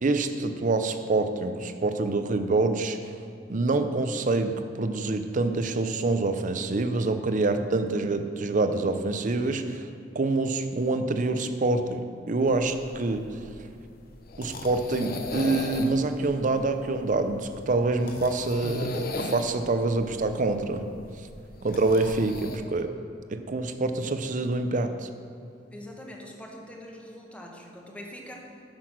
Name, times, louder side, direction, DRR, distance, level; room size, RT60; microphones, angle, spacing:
voice 1, 0.0-3.1 3.5-9.9 10.1-13.4 14.4-20.9 21.6-22.9 23.3-25.1, right 3 dB, 45° right, 9 dB, 0.6 m, -26 dB
sound 1, 12.5-22.6, left 2 dB, 55° left, 0.7 m, -37 dB
voice 2, 25.7-28.6, left 1 dB, 5° left, 0 dB, 1.1 m, -44 dB
8.6 x 6.1 x 6.1 m, 2.6 s
head